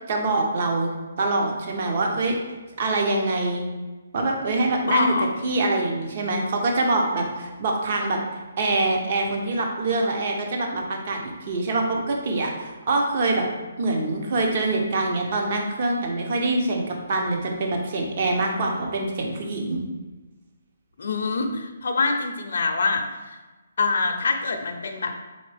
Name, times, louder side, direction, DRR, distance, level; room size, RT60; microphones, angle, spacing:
voice 1, 0.1-2.4 2.8-3.6 4.1-13.4 13.8-19.8, right 2 dB, 45° right, 1 dB, 0.7 m, -25 dB
voice 2, 4.8-5.3 21.0-23.0 23.8-25.2, left 4 dB, 65° left, 3 dB, 0.5 m, -24 dB
4.1 x 3.7 x 3.3 m, 1.2 s
hypercardioid pair, 165°, 0 cm